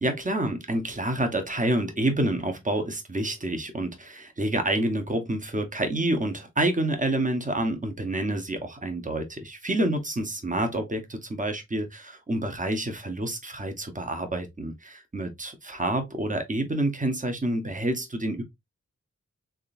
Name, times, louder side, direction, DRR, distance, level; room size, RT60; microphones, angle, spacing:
voice 1, 0.0-18.4, right 1 dB, 25° right, 1.0 m, -28 dB
3.7 x 3.5 x 2.5 m
wide cardioid pair, 80°, 30 cm